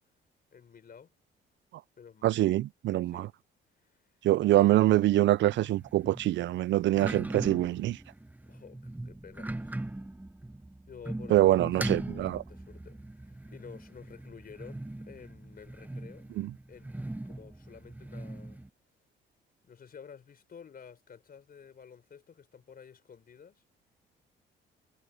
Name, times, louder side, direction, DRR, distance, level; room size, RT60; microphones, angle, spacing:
voice 1, 0.5-1.1 2.0-2.4 3.1-3.3 3.8-4.1 8.5-10.0 10.9-16.3 16.7-18.6 19.6-23.6, left 7 dB, 50° left, 4.6 m, -51 dB
voice 2, 2.2-3.3 4.2-8.0 11.3-12.4 16.4-16.5, right 15 dB, 70° right, 0.4 m, -25 dB
sound 1, 4.5-18.7, right 1 dB, 10° right, 0.9 m, -40 dB
cardioid pair, 90°, 20 cm